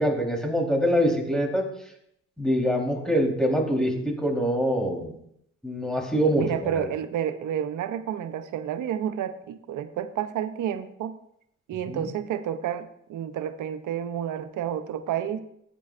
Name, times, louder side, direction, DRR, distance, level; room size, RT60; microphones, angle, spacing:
voice 1, 0.0-1.6 2.4-5.1 5.6-6.9 11.9-12.1, equal, ahead, 0 dB, 3.7 m, -24 dB
voice 2, 6.4-11.2 11.7-15.4, right 9 dB, 80° right, 11 dB, 0.7 m, -30 dB
14.0 x 9.0 x 2.5 m, 0.73 s
supercardioid pair, 50°, 30 cm